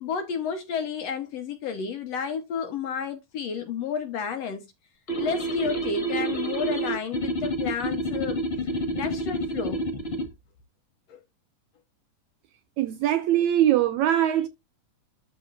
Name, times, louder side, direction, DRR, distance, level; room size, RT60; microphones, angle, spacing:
voice 1, 0.0-4.7 5.2-8.4 8.9-9.9 11.1-11.2, left 6 dB, 65° left, 1.8 m, -31 dB
sound 1, 5.1-10.3, right 1 dB, 85° left, 0.5 m, -29 dB
voice 2, 12.8-14.5, right 12 dB, 80° right, 1.7 m, -22 dB
12.5 x 4.3 x 2.5 m
omnidirectional pair, 3.8 m